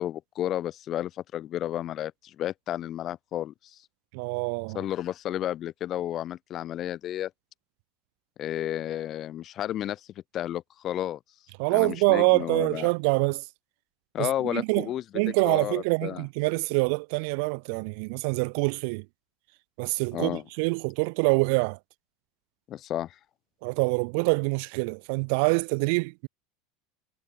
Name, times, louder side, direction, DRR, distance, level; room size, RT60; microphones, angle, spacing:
voice 1, 0.0-3.8 4.7-7.3 8.4-10.1 10.3-11.2 11.7-12.9 14.1-16.3 20.1-20.4 22.7-23.2, left 12 dB, 40° left, 2.3 m, -32 dB
voice 2, 4.1-4.8 11.6-13.4 14.2-14.9 15.1-19.0 19.8-21.8 23.6-26.3, right 34 dB, 65° right, 1.3 m, -25 dB
supercardioid pair, 130°, 0 cm